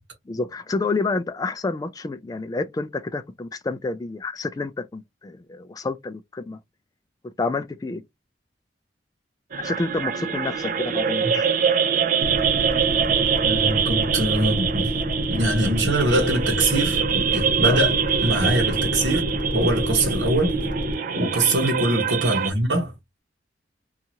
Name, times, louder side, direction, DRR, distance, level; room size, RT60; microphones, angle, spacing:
voice 1, 0.3-6.6 7.4-8.0 9.6-11.5 17.6-17.8 21.1-21.3, left 3 dB, 20° left, 0.3 m, -29 dB
sound 1, 9.5-22.5, right 7 dB, 50° right, 0.4 m, -24 dB
sound 2, 12.2-20.9, equal, 25° right, 0.8 m, -28 dB
voice 2, 13.4-14.9 15.3-17.9 18.2-19.2 19.5-20.5 21.2-22.9, right 1 dB, 75° right, 1.1 m, -23 dB
2.7 x 2.4 x 2.8 m
head